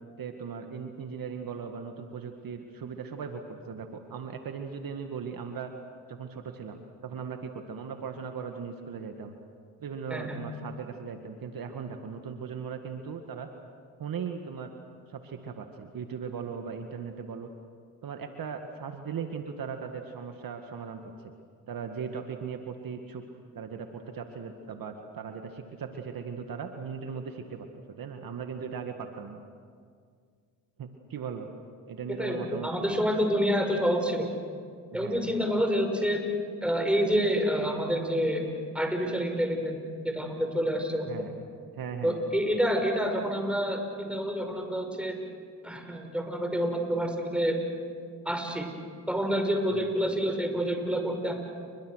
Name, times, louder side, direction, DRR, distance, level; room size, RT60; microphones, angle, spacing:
voice 1, 0.2-5.7 6.1-9.4 9.8-13.5 14.0-14.7 15.1-17.5 18.0-21.3 21.7-23.2 23.5-27.7 27.9-29.4 30.8-31.5 31.9-32.7 34.9-35.3 41.1-41.3 41.7-42.2 49.7-49.9, right 6 dB, 55° right, 5 dB, 2.0 m, -38 dB
voice 2, 32.2-34.3 34.9-36.2 36.6-38.4 38.7-41.3 42.0-45.2 45.6-47.6 48.2-48.7 49.1-51.3, equal, 5° right, 4 dB, 5.9 m, -28 dB
29.0 x 23.5 x 6.5 m, 2.1 s
supercardioid pair, 65°, 42 cm